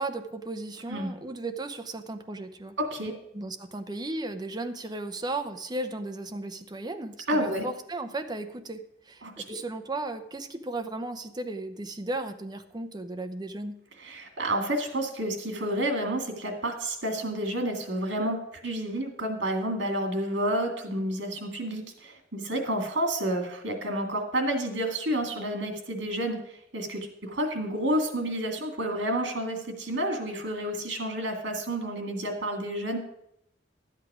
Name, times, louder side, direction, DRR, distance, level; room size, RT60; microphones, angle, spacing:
voice 1, 0.0-2.7 3.3-13.8, right 2 dB, 25° right, 7 dB, 0.7 m, -35 dB
voice 2, 2.8-3.1 7.3-7.7 9.2-9.6 14.0-18.4 18.6-26.4 26.7-33.0, right 1 dB, 85° right, 4 dB, 2.1 m, -30 dB
12.0 x 8.3 x 4.9 m, 0.80 s
head